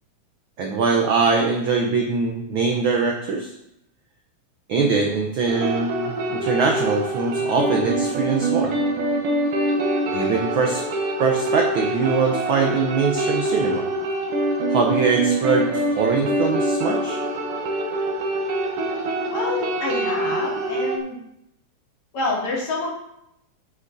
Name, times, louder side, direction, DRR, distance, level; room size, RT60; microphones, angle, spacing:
voice 1, 0.6-3.5 4.7-8.8 10.1-10.8 11.2-13.8 14.7-17.2, right 4 dB, 80° right, 1 dB, 1.1 m, -22 dB
sound 1, 5.5-21.0, right 1 dB, 60° right, 1.9 m, -24 dB
voice 2, 19.2-21.2 22.1-22.9, left 2 dB, 70° left, -4 dB, 3.8 m, -27 dB
9.8 x 8.5 x 2.7 m, 0.80 s
omnidirectional pair, 3.4 m